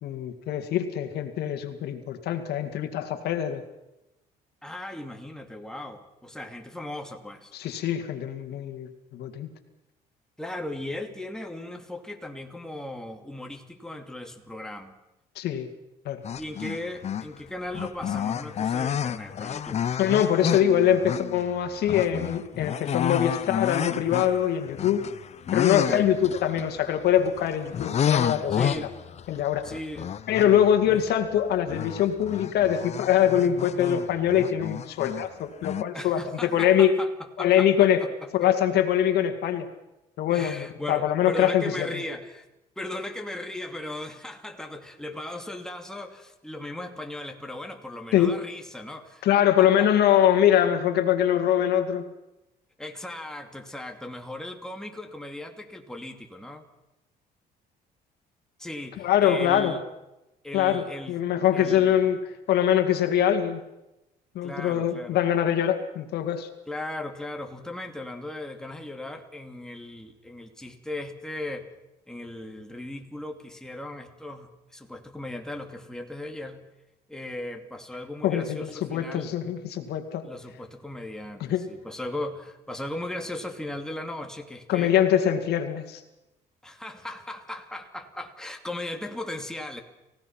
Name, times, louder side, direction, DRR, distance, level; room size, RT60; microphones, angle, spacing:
voice 1, 0.0-3.6 7.5-9.5 15.4-15.7 16.1-16.2 20.0-25.0 25.5-28.7 29.3-29.7 30.3-36.9 37.4-38.0 38.3-39.7 40.2-42.0 48.1-48.3 49.2-52.0 59.0-59.7 60.5-62.2 62.5-63.6 64.3-66.5 78.2-80.2 81.4-81.6 84.7-86.0, left 10 dB, 75° left, 7 dB, 2.2 m, -23 dB
voice 2, 4.6-7.5 10.4-14.9 16.4-19.9 25.8-26.1 28.5-29.0 29.6-30.1 30.9-31.0 35.9-37.1 37.4-38.1 38.4-38.5 40.3-42.5 42.8-49.3 49.6-49.9 52.8-56.6 58.6-59.8 60.4-61.2 61.5-62.0 64.4-65.2 66.7-71.7 72.1-76.6 77.1-79.3 80.2-84.9 86.6-89.8, left 1 dB, 5° left, 3 dB, 2.6 m, -37 dB
sound 1, 16.2-17.4 17.7-31.4 31.7-35.3 35.6-35.8, left 8 dB, 40° left, 0.7 m, -31 dB
30.0 x 16.5 x 5.9 m, 0.93 s
cardioid pair, 110°, 17 cm